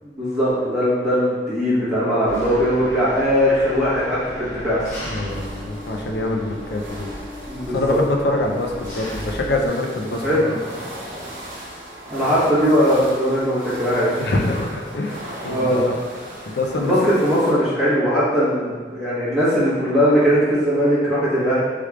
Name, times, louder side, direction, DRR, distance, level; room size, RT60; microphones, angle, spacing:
voice 1, 0.0-4.8 7.5-8.0 10.2-10.5 12.1-14.2 15.5-15.9 16.8-21.6, equal, 5° right, -14 dB, 1.1 m, -19 dB
Engine, 2.3-9.7, left 1 dB, 50° left, 1.0 m, -35 dB
voice 2, 5.1-7.1 7.7-10.6 14.2-16.0 16.5-16.9, left 2 dB, 65° left, 1 dB, 0.4 m, -25 dB
sound 1, 5.3-17.5, right 1 dB, 50° right, 0.7 m, -37 dB
3.2 x 3.2 x 2.3 m, 1.5 s
head